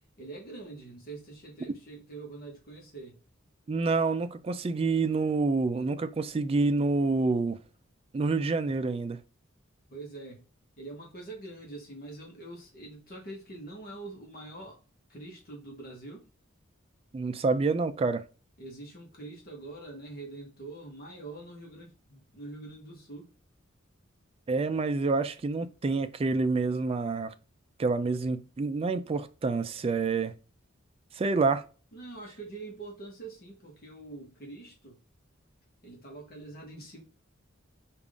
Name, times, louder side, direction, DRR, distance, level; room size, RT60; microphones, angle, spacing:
voice 1, 0.2-3.2 9.9-10.4 10.8-14.8 15.1-16.2 18.6-23.3 31.9-35.0 35.8-37.0, right 2 dB, 50° left, 1.0 m, -44 dB
voice 2, 3.7-7.6 8.1-9.2 17.1-18.2 24.5-27.3 27.8-30.3 31.2-31.6, right 3 dB, 30° right, 0.3 m, -27 dB
3.5 x 2.5 x 3.5 m
head